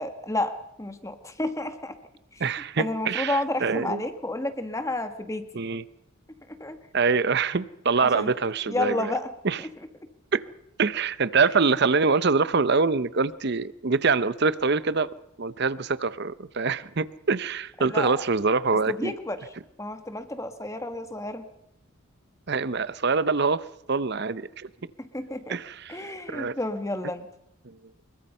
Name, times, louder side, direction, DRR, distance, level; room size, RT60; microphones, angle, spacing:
voice 1, 0.0-1.9 2.3-2.4 2.8-5.6 6.6-6.8 8.0-8.3 8.7-9.3 17.8-18.2 18.9-19.5 19.8-21.4 25.0-25.6 25.9-27.3, left 1 dB, 15° left, 8 dB, 1.5 m, -31 dB
voice 2, 2.4-4.0 5.5-5.8 6.9-9.1 9.4-9.6 10.3-10.4 10.8-15.1 15.4-19.1 22.5-24.7 25.5-26.6 27.7-27.8, right 4 dB, 50° right, 16 dB, 0.7 m, -25 dB
24.5 x 22.0 x 5.5 m, 0.83 s
head